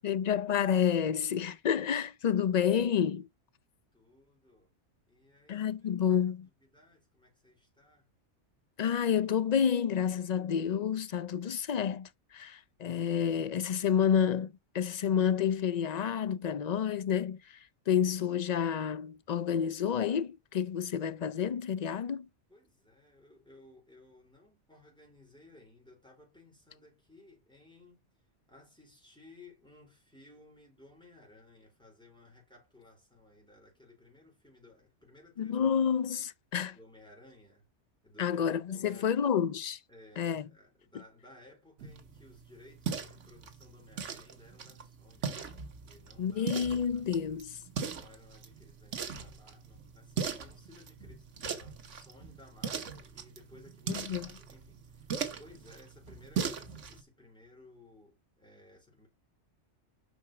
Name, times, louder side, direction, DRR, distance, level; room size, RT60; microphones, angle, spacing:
voice 1, 0.0-3.2 5.5-6.5 8.8-14.5 14.7-17.6 17.9-22.3 35.4-36.7 38.2-39.8 40.2-40.4 46.2-47.6 53.9-54.3, left 8 dB, 55° left, 0.4 m, -29 dB
voice 2, 3.9-4.7 5.1-5.8 6.1-8.1 22.5-28.1 28.5-35.7 36.7-37.7 38.0-39.2 39.9-45.4 45.8-47.1 47.8-59.1, left 2 dB, 5° left, 4.5 m, -58 dB
sound 1, 41.8-57.0, right 6 dB, 85° right, 1.5 m, -40 dB
5.8 x 5.1 x 5.8 m
omnidirectional pair, 1.2 m